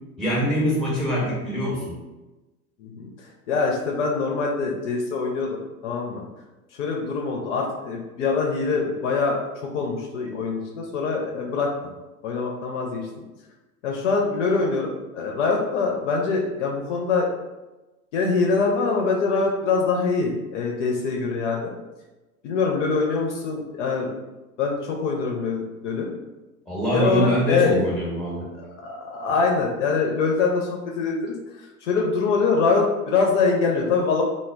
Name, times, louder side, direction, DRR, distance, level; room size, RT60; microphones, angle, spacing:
voice 1, 0.2-2.0 26.7-28.5, equal, ahead, -4 dB, 0.7 m, -24 dB
voice 2, 2.8-6.2 6.8-11.7 12.2-13.1 13.8-17.3 18.1-21.7 22.4-24.1 24.6-26.1 26.9-27.8 28.6-34.2, left 4 dB, 55° left, 0 dB, 0.5 m, -24 dB
2.0 x 2.0 x 3.2 m, 1.1 s
figure-of-eight pair, 85°, 45 cm